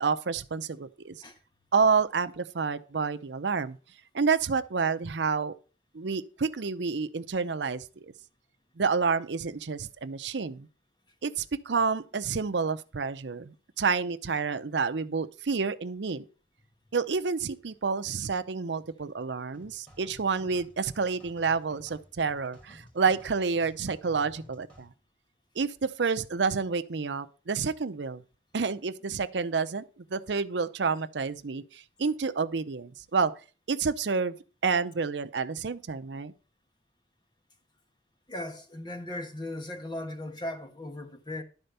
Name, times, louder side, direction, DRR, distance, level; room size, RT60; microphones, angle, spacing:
voice 1, 0.0-1.2 1.7-3.8 4.1-5.5 5.9-8.1 8.8-10.7 11.2-16.3 16.9-24.9 25.6-28.2 28.5-29.8 30.1-33.3 33.7-34.4 34.6-36.3, right 5 dB, 85° right, 0.6 m, -29 dB
sound 1, 19.5-24.9, left 1 dB, 10° left, 2.3 m, -54 dB
voice 2, 38.3-41.4, left 1 dB, 25° left, 1.3 m, -37 dB
11.5 x 4.4 x 6.7 m
head